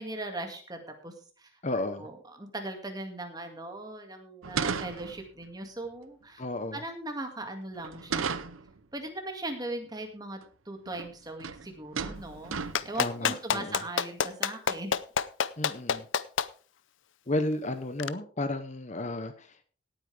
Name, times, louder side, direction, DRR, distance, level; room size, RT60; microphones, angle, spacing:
voice 1, 0.0-1.6 2.0-6.4 6.7-8.4 8.9-10.4 10.7-14.9, right 2 dB, 20° right, 4 dB, 2.1 m, -39 dB
voice 2, 1.6-2.1 6.4-6.8 13.0-13.8 15.6-16.1 17.3-19.6, left 2 dB, 35° left, 10 dB, 0.9 m, -33 dB
sound 1, 4.4-5.4 7.8-8.8 10.4-10.5 10.9-11.1 11.4-11.7 11.9-13.0, right 5 dB, 80° right, 0.9 m, -34 dB
Clapping, 12.7-16.5 18.0-18.1, left 7 dB, 70° left, 0.6 m, -27 dB
17.5 x 8.9 x 3.4 m, 0.40 s
head